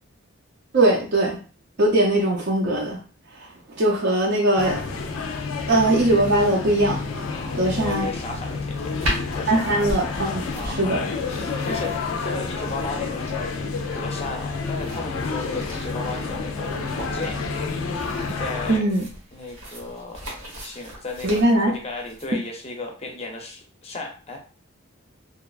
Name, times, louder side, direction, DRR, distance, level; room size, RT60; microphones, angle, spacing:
voice 1, 0.7-1.4 1.8-3.0 3.7-4.8 5.7-7.0 7.5-8.1 9.5-11.0 18.7-19.0 21.2-21.7, right 1 dB, 50° right, -2 dB, 0.5 m, -20 dB
sound 1, 4.6-18.8, left 4 dB, 85° left, 0.4 m, -29 dB
voice 2, 7.3-9.6 10.5-13.3 13.9-17.4 18.3-18.9 19.3-24.4, left 2 dB, 30° left, 1 dB, 0.5 m, -35 dB
sound 2, 9.0-22.3, equal, 85° right, 1.1 m, -37 dB
2.8 x 2.3 x 2.3 m, 0.39 s
head